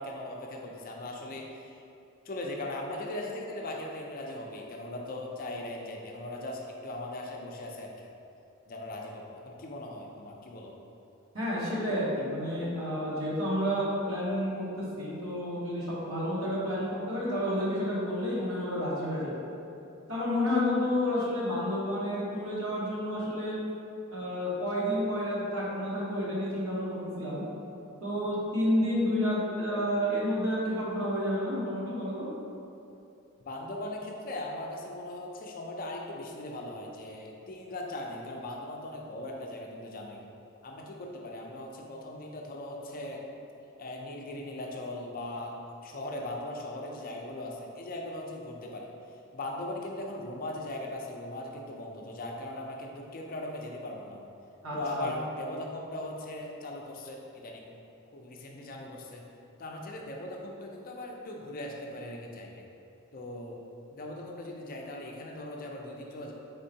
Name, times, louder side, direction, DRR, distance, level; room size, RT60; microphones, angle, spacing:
voice 1, 0.0-1.8 2.2-8.1 8.7-10.7 33.5-40.2 40.6-43.2 43.8-45.6 45.8-48.9 49.3-54.2 54.7-57.7 58.1-59.2 59.6-62.6 63.1-63.6 63.9-66.3, left 1 dB, 40° left, 0 dB, 0.4 m, -39 dB
voice 2, 11.3-19.3 20.1-23.6 24.1-27.4 28.0-32.3 54.6-55.1, equal, 70° right, -7 dB, 1.1 m, -30 dB
4.3 x 3.7 x 2.7 m, 2.7 s
head